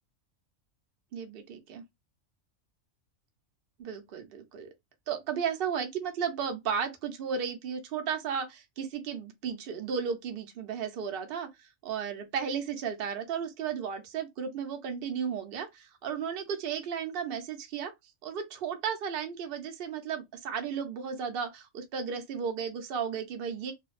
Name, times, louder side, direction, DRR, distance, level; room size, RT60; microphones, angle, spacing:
voice 1, 1.1-1.8 3.8-4.7 5.1-17.9 18.2-23.7, right 7 dB, 60° right, 0.7 m, -34 dB
2.5 x 2.1 x 2.3 m
omnidirectional pair, 1.3 m